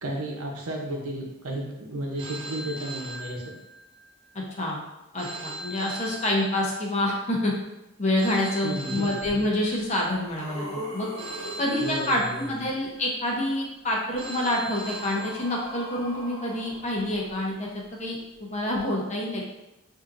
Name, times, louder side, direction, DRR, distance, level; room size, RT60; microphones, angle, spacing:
voice 1, 0.0-3.4 8.6-9.1 11.8-12.6, right 1 dB, 90° right, 0 dB, 0.8 m, -33 dB
Telephone, 2.2-4.0 5.2-7.0 8.2-10.0 11.2-13.0 14.2-16.0, right 2 dB, 25° right, 0.3 m, -39 dB
voice 2, 4.3-4.8 5.1-7.5 8.0-11.1 11.6-19.4, left 1 dB, 30° left, -2 dB, 0.7 m, -27 dB
Zombie breathing, 9.2-9.3 9.9-12.6 13.8-17.7 18.7-18.8, equal, 85° left, 1.0 m, -41 dB
5.6 x 2.7 x 2.5 m, 0.94 s
head